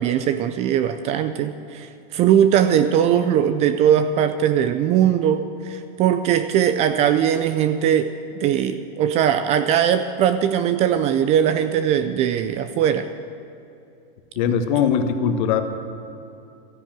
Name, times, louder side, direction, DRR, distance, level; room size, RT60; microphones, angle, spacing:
voice 1, 0.0-8.1 8.4-13.1 14.5-14.6, right 9 dB, 25° right, 10 dB, 0.4 m, -20 dB
voice 2, 14.4-15.6, left 7 dB, 50° left, 8 dB, 1.4 m, -20 dB
13.0 x 10.5 x 8.9 m, 2.7 s
supercardioid pair, 145°, 29 cm